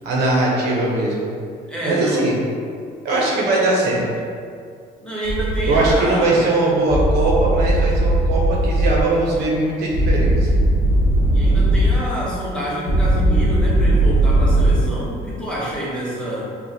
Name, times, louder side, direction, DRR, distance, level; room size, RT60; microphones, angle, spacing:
voice 1, 0.0-1.3 1.8-2.3 3.0-4.0 5.7-10.5, right 2 dB, 75° right, -4 dB, 1.0 m, -20 dB
voice 2, 1.7-2.3 5.0-6.4 11.3-16.5, right 1 dB, 5° left, -8 dB, 1.2 m, -27 dB
sound 1, 5.2-5.9 6.9-9.0 9.9-12.0 12.9-14.8, right 1 dB, 40° left, 0.8 m, -17 dB
5.3 x 2.4 x 2.9 m, 2.2 s
cardioid pair, 110°, 17 cm